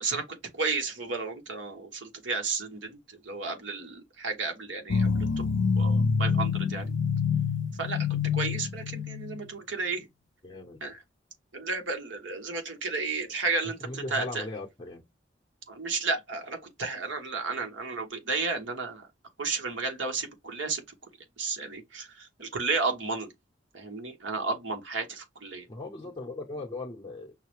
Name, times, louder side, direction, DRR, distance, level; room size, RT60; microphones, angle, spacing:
voice 1, 0.0-3.0 3.2-5.4 5.8-6.9 7.8-10.1 10.8-11.0 11.5-14.4 15.7-19.1 19.4-20.8 21.4-23.3 23.7-25.6, right 4 dB, 85° right, 1.2 m, -33 dB
sound 1, 4.9-9.5, left 5 dB, 85° left, 0.5 m, -27 dB
voice 2, 10.4-10.8 13.8-15.0 25.7-27.3, left 2 dB, 20° left, 0.7 m, -38 dB
5.6 x 2.1 x 3.1 m
head